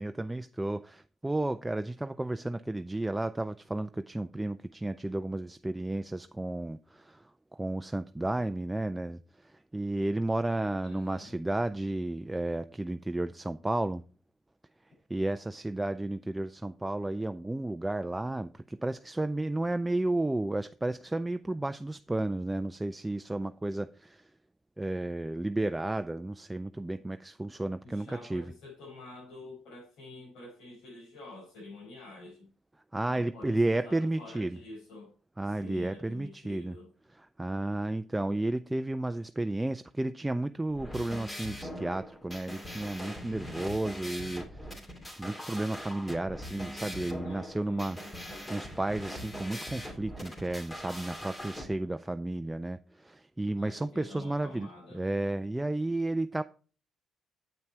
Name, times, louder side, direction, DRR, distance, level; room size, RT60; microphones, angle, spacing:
voice 1, 0.0-7.2 7.5-9.2 9.4-14.0 15.1-24.2 24.8-28.5 32.9-34.6 35.4-36.8 37.1-44.8 45.2-48.0 48.5-54.7 54.9-56.4, right 2 dB, 10° right, 0.4 m, -32 dB
voice 2, 10.8-11.3 27.8-32.5 33.1-35.1 35.4-36.9 43.2-43.7 47.2-47.9 48.2-48.4 53.6-55.0, left 2 dB, 80° left, 5.2 m, -48 dB
sound 1, 40.7-51.6, equal, 25° left, 2.5 m, -42 dB
7.9 x 5.8 x 4.4 m
cardioid pair, 90°, 0 cm